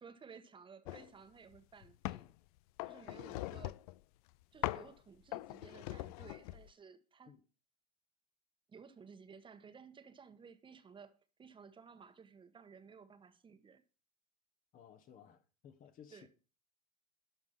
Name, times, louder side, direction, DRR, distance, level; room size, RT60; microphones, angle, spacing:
voice 1, 0.0-2.3 2.8-3.7 4.5-7.3 8.7-13.8 16.1-16.3, right 6 dB, 25° right, 1.3 m, -56 dB
sound 1, 0.8-1.1 1.5-2.3 2.8-4.0 4.6-4.9 5.3-6.7, left 19 dB, 65° left, 0.5 m, -41 dB
voice 2, 3.3-3.7 7.3-7.4 14.7-16.3, left 8 dB, 45° left, 1.5 m, -58 dB
12.0 x 5.3 x 5.8 m
hypercardioid pair, 90°, 20 cm